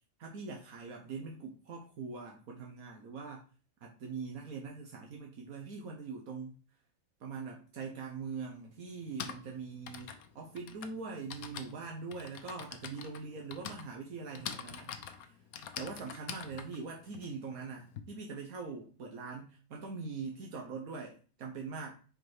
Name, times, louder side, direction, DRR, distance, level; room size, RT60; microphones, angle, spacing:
voice 1, 0.2-3.4 3.8-6.6 7.2-14.9 15.2-15.4 15.8-21.9, right 4 dB, 80° right, 0 dB, 1.4 m, -42 dB
Typing, 7.8-7.9 8.9-18.0, left 8 dB, 80° left, 1.1 m, -45 dB
5.3 x 3.9 x 4.7 m, 0.38 s
omnidirectional pair, 1.5 m